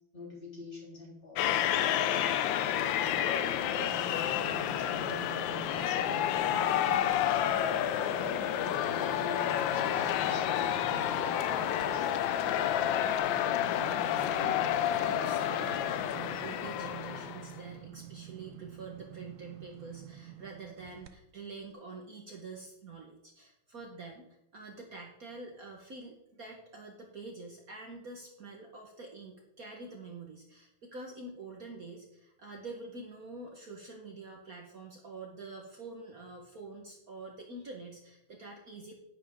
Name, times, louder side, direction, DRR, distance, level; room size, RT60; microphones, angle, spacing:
voice 1, 0.1-2.3 2.7-7.8 8.1-12.2, left 2 dB, 25° left, -4 dB, 3.8 m, -46 dB
sound 1, 1.4-17.6, left 10 dB, 75° left, 1.3 m, -30 dB
sound 2, 2.6-7.2 7.6-21.1 21.6-21.7, right 11 dB, 80° right, 1.7 m, -49 dB
Engine / Mechanisms, 6.3-13.2, right 2 dB, 30° right, 2.0 m, -48 dB
voice 2, 13.9-24.3 24.5-38.9, right 3 dB, 45° right, 1 dB, 1.7 m, -46 dB
10.5 x 10.0 x 3.7 m, 0.81 s
omnidirectional pair, 2.2 m